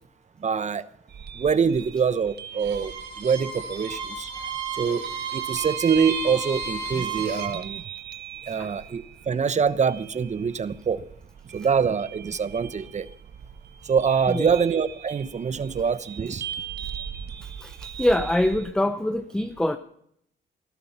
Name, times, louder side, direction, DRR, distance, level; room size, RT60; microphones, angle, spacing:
voice 1, 0.4-0.9 1.3-4.3 4.8-5.0 5.3-7.8 8.5-11.0 11.5-13.1 13.8-16.5, right 6 dB, 35° right, 15 dB, 0.9 m, -25 dB
sound 1, 1.1-18.7, right 9 dB, 55° right, 1.1 m, -40 dB
Bowed string instrument, 2.5-7.6, right 5 dB, 75° right, 3.5 m, -33 dB
voice 2, 17.4-19.8, left 1 dB, 5° left, 10 dB, 0.8 m, -25 dB
18.5 x 12.5 x 5.7 m, 0.71 s
cardioid pair, 90°, 20 cm